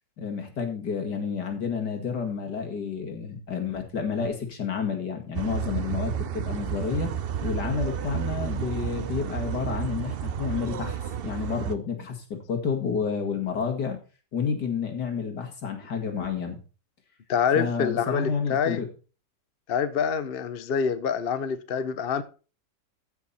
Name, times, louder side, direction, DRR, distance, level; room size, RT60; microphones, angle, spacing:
voice 1, 0.2-7.1 7.4-14.0 14.3-16.6 17.5-18.9, left 6 dB, 70° left, 2.6 m, -30 dB
sound 1, 5.3-11.7, right 9 dB, 90° right, 0.5 m, -31 dB
voice 2, 17.3-18.8 19.7-22.2, left 7 dB, 50° left, 0.7 m, -26 dB
14.0 x 5.8 x 4.2 m
omnidirectional pair, 1.9 m